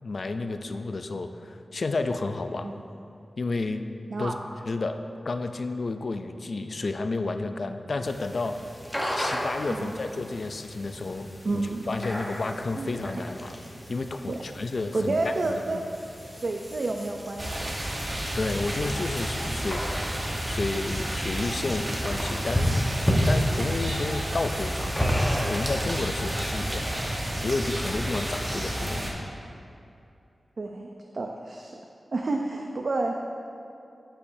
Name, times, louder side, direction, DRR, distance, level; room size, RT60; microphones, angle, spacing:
voice 1, 0.0-2.7 3.4-3.8 4.2-4.3 4.6-8.6 9.1-13.6 13.9-15.2 15.5-15.8 18.3-20.1 20.4-29.3, left 3 dB, 55° left, 7 dB, 0.4 m, -31 dB
sound 1, 8.0-26.9, equal, 5° left, 1.0 m, -33 dB
voice 2, 11.4-11.9 12.8-12.9 14.3-14.4 14.9-15.9 16.4-17.7 30.6-30.9 31.1-31.8 32.1-33.1, right 2 dB, 55° right, 2 dB, 0.4 m, -29 dB
sound 2, 17.4-29.1, right 1 dB, 25° right, 1.0 m, -31 dB
12.0 x 5.7 x 2.7 m, 2.7 s
wide cardioid pair, 125°, 0 cm